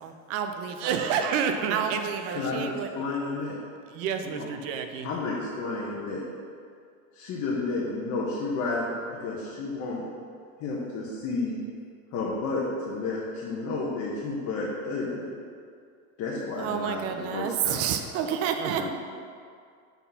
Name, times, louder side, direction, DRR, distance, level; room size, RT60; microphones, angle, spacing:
voice 1, 0.0-0.9 1.7-2.9 16.6-18.9, right 8 dB, 35° right, 6 dB, 0.6 m, -30 dB
voice 2, 0.8-2.5 3.9-5.1 18.3-18.9, right 7 dB, 65° right, 6 dB, 0.9 m, -30 dB
voice 3, 2.3-3.6 5.0-6.2 7.1-8.9 9.2-10.1 10.6-11.6 12.1-15.3 16.2-17.8 18.8-18.9, left 3 dB, 40° left, -6 dB, 1.4 m, -31 dB
7.8 x 4.5 x 5.7 m, 2.3 s
supercardioid pair, 140°, 41 cm